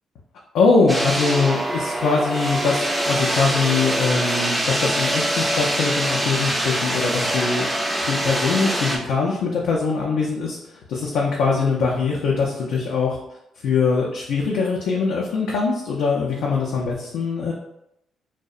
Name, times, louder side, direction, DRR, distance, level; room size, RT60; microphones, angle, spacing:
voice 1, 0.5-7.7 8.0-10.6 10.9-13.2 13.6-17.5, left 4 dB, 80° left, -4 dB, 0.4 m, -22 dB
sound 1, 0.9-9.0, right 1 dB, 15° right, 0.4 m, -24 dB
2.7 x 2.0 x 2.3 m, 0.81 s
cardioid pair, 90°, 0 cm